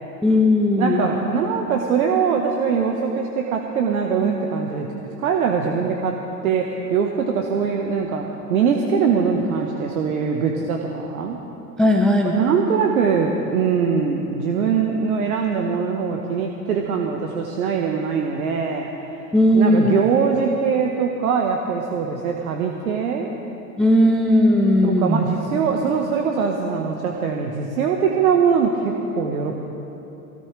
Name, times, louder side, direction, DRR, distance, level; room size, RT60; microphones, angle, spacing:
voice 1, 0.2-1.1 11.8-12.4 19.3-20.0 23.8-25.2, left 1 dB, ahead, 1 dB, 0.4 m, -17 dB
voice 2, 0.8-4.9 5.2-6.1 6.4-6.6 6.9-11.4 12.2-19.3 19.5-23.3 24.8-29.6, right 6 dB, 60° right, 1 dB, 1.5 m, -22 dB
23.0 x 17.5 x 3.4 m, 2.9 s
figure-of-eight pair, 95°, 49 cm